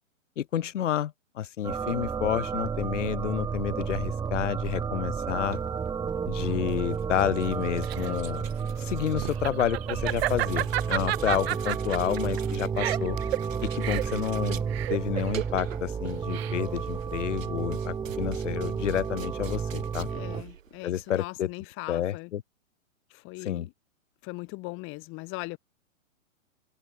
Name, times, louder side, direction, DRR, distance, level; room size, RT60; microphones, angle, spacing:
voice 1, 0.4-5.6 6.3-8.5 8.8-13.2 13.6-14.6 14.9-20.1 20.8-21.5 21.9-22.4 23.4-23.7, left 11 dB, 65° left, 2.4 m, -30 dB
sound 1, 1.6-20.4, right 6 dB, 10° right, 1.7 m, -31 dB
sound 2, 5.3-21.3, right 8 dB, 70° right, 6.4 m, -48 dB
Laughter, 7.5-16.9, right 14 dB, 50° right, 2.0 m, -32 dB
voice 2, 20.1-22.3 23.1-23.7 24.2-25.6, left 25 dB, 30° left, 4.7 m, -39 dB
hypercardioid pair, 140°, 40 cm